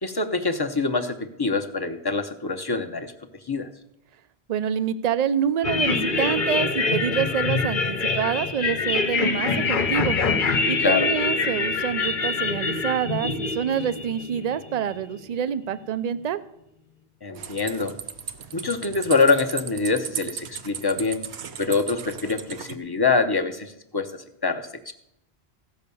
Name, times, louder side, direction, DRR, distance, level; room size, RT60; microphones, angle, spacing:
voice 1, 0.0-3.1 3.5-3.7 10.8-11.1 17.2-18.0 18.5-21.2 21.6-24.9, left 4 dB, 25° left, 7 dB, 0.7 m, -25 dB
voice 2, 4.5-10.2 10.6-16.4, right 8 dB, 50° right, 14 dB, 0.5 m, -27 dB
sound 1, 5.6-15.0, left 4 dB, 50° left, 1.0 m, -25 dB
sound 2, 17.3-22.8, right 7 dB, 80° right, 1.0 m, -36 dB
15.5 x 5.6 x 6.9 m, 0.80 s
omnidirectional pair, 1.1 m